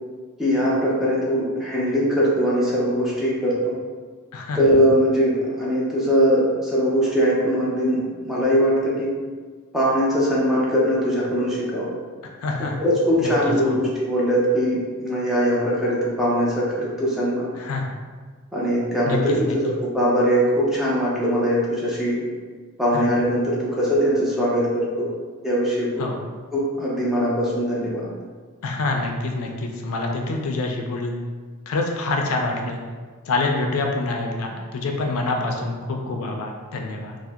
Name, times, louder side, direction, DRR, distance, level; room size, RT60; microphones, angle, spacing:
voice 1, 0.4-3.7 4.5-9.1 9.7-11.9 12.6-17.5 18.5-22.2 22.8-25.1 25.4-26.0 26.5-28.1, equal, ahead, -7 dB, 0.6 m, -21 dB
voice 2, 12.4-12.8 13.2-13.8 17.6-17.9 19.1-19.6 22.9-23.0 26.0-26.2 28.6-31.2 31.7-32.8 33.3-37.2, left 2 dB, 75° left, 2 dB, 0.4 m, -26 dB
2.6 x 2.0 x 3.4 m, 1.5 s
head